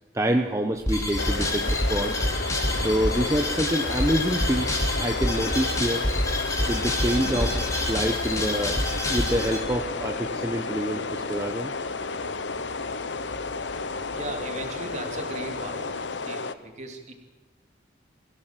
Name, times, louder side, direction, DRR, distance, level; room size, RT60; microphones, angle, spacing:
voice 1, 0.1-2.2 2.7-6.1 6.7-8.8 9.1-11.7, right 1 dB, 15° right, 3 dB, 1.1 m, -27 dB
sound 1, 0.7-16.0, equal, 80° right, 4.5 m, -44 dB
sound 2, 0.9-9.6, left 1 dB, 15° left, 3.0 m, -27 dB
sound 3, 1.2-16.5, left 4 dB, 80° left, 1.0 m, -32 dB
voice 2, 14.1-15.8 16.1-17.1, right 2 dB, 40° right, 3 dB, 3.0 m, -37 dB
23.0 x 16.0 x 7.6 m, 1.2 s
head